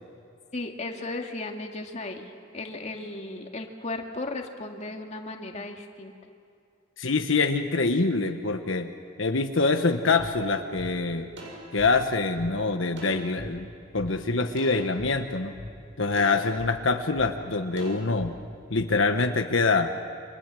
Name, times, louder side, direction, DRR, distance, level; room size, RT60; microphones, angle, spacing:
voice 1, 0.5-6.1, left 2 dB, 35° left, 2 dB, 2.3 m, -35 dB
voice 2, 7.0-8.9 9.2-11.3 11.7-13.7 13.9-15.5 16.0-18.3 18.7-19.9, left 3 dB, 80° left, 6 dB, 1.3 m, -25 dB
sound 1, 10.2-10.3 10.8-10.9 11.4-12.5 13.0-13.5 14.0-14.1 14.6-15.1 15.6-15.7 16.2-16.7 17.2-17.3 17.8-18.3 18.8-18.9, equal, 70° right, 7.9 m, -39 dB
29.5 x 25.5 x 7.8 m, 2.4 s
head